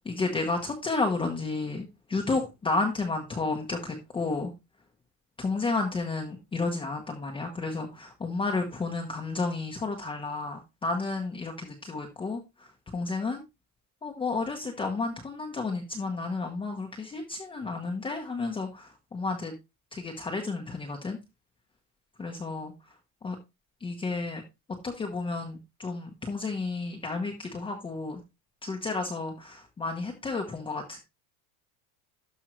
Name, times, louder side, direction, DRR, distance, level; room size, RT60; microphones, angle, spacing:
voice 1, 0.0-4.5 5.4-13.4 14.0-19.5 19.9-21.2 22.2-22.7 23.2-23.4 23.8-24.4 24.8-28.2 28.6-31.0, left 3 dB, 10° left, 1 dB, 1.0 m, -32 dB
12.5 x 5.3 x 3.1 m, 0.24 s
cardioid pair, 170°, 45 cm